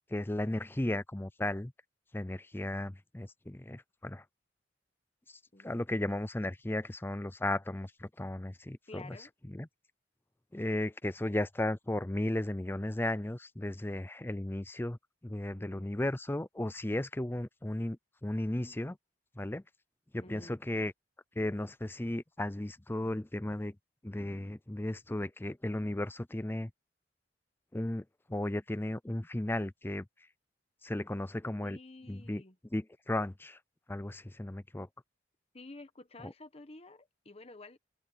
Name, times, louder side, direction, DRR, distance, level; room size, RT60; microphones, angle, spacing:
voice 1, 0.1-1.7 2.1-4.2 5.6-9.2 9.5-9.7 10.5-15.0 15.2-18.0 18.2-19.0 19.4-19.6 20.1-20.9 21.4-23.7 24.0-26.7 27.7-30.0 30.8-31.8 32.1-32.4 32.7-33.6 33.9-34.9, left 1 dB, 10° left, 0.5 m, -35 dB
voice 2, 8.9-9.3 15.5-15.9 20.2-20.6 31.6-32.6 35.5-37.8, left 2 dB, 35° left, 1.2 m, -51 dB
head